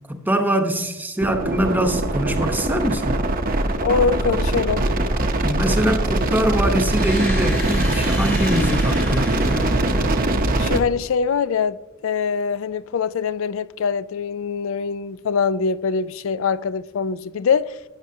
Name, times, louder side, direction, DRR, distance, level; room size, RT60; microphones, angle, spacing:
voice 1, 0.1-3.2 5.4-9.8, right 1 dB, 10° right, 0.8 m, -23 dB
sound 1, 1.2-10.8, right 1 dB, 45° right, 0.8 m, -22 dB
voice 2, 3.8-4.9 10.6-11.8 12.0-17.7, left 6 dB, 70° left, 0.4 m, -23 dB
sound 2, 6.8-10.7, left 1 dB, 10° left, 1.1 m, -34 dB
12.0 x 9.3 x 2.8 m
head